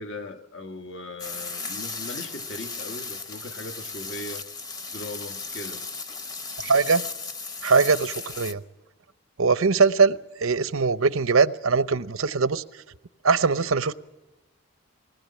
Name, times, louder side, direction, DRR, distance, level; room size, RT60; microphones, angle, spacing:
voice 1, 0.0-4.5 4.9-5.9, left 2 dB, 60° left, 1.4 m, -39 dB
sound 1, 1.2-8.5, left 4 dB, 15° left, 0.9 m, -35 dB
voice 2, 6.6-7.0 7.6-8.6 9.4-12.6 13.2-13.9, right 4 dB, 75° right, 0.8 m, -21 dB
20.5 x 19.0 x 8.6 m
head